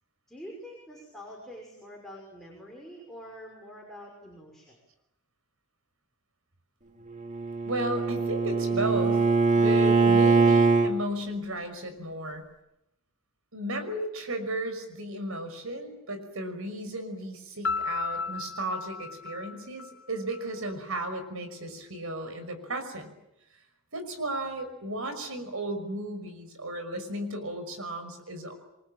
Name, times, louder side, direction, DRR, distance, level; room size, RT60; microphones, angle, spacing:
voice 1, 0.3-4.8, equal, ahead, -2 dB, 6.0 m, -45 dB
Bowed string instrument, 7.1-10.9, right 4 dB, 35° right, 2.1 m, -22 dB
voice 2, 7.7-9.3 9.6-12.4 13.5-23.1 23.9-28.5, right 1 dB, 75° right, 8 dB, 5.8 m, -34 dB
Piano, 17.6-20.5, left 5 dB, 65° left, 1.1 m, -34 dB
28.0 x 23.5 x 9.0 m, 0.88 s
head